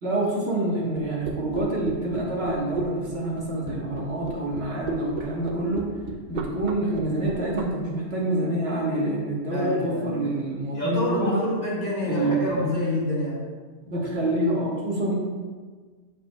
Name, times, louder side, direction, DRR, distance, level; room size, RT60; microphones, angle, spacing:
voice 1, 0.0-5.9 6.3-11.4 12.0-12.6 13.9-15.2, right 1 dB, 70° right, -4 dB, 1.6 m, -27 dB
sound 1, 0.9-7.6, right 5 dB, 50° right, 0.6 m, -33 dB
voice 2, 9.5-10.2 10.7-13.4, left 1 dB, 40° left, -7 dB, 1.7 m, -27 dB
7.4 x 7.0 x 2.3 m, 1.5 s
omnidirectional pair, 1.1 m